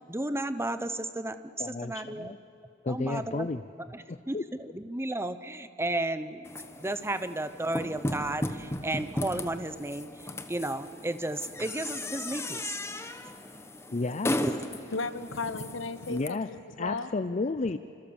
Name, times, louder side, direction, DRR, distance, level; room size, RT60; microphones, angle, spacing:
voice 1, 0.1-2.3 2.9-10.1 10.5-12.8 14.4-14.5, right 1 dB, 15° right, 11 dB, 0.8 m, -33 dB
voice 2, 1.6-2.4 2.8-3.6 4.1-4.4 13.9-14.4 16.1-16.5 16.8-17.8, left 3 dB, 35° left, 11 dB, 0.5 m, -32 dB
sound 1, 6.5-16.3, left 1 dB, 15° left, 1.1 m, -36 dB
voice 3, 14.9-17.1, left 3 dB, 90° left, 12 dB, 1.2 m, -35 dB
27.0 x 26.0 x 7.1 m, 2.8 s
head